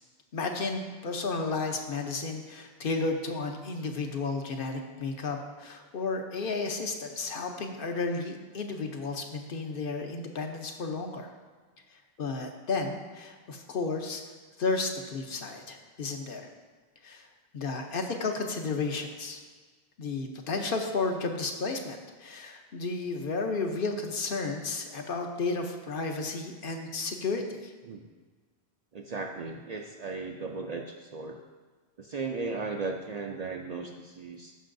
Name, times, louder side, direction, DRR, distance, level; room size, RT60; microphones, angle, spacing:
voice 1, 0.3-11.3 12.2-14.2 14.6-16.5 17.0-17.3 17.5-19.4 20.0-27.7, left 3 dB, 60° left, 3 dB, 0.9 m, -32 dB
voice 2, 28.9-31.4 32.0-34.6, right 4 dB, 50° right, 2 dB, 0.5 m, -36 dB
13.5 x 5.5 x 2.6 m, 1.4 s
omnidirectional pair, 1.1 m